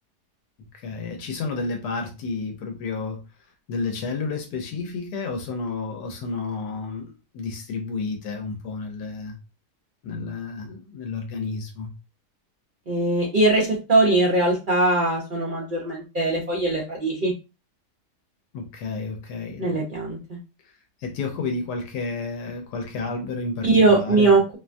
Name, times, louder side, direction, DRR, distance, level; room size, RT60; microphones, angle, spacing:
voice 1, 0.6-3.2 3.7-9.4 10.0-11.9 18.5-19.7 20.6-20.7 21.0-24.3, left 4 dB, 80° left, 1.2 m, -31 dB
voice 2, 12.9-17.3 19.6-20.4 23.6-24.4, right 2 dB, 60° right, 0.5 m, -21 dB
2.8 x 2.2 x 2.5 m
omnidirectional pair, 1.7 m